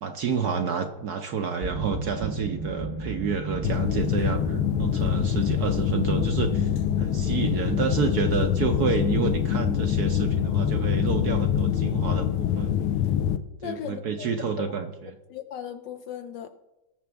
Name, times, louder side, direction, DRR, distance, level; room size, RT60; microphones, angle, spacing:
voice 1, 0.0-6.7 7.0-12.8 13.6-14.9, right 6 dB, 65° right, 1.0 m, -29 dB
sound 1, 1.6-11.7, right 2 dB, 45° right, 0.3 m, -37 dB
sound 2, 3.6-13.4, left 10 dB, 90° left, 1.5 m, -25 dB
voice 2, 13.6-14.7 15.3-16.5, left 10 dB, 70° left, 1.1 m, -37 dB
18.5 x 6.8 x 3.4 m
omnidirectional pair, 2.3 m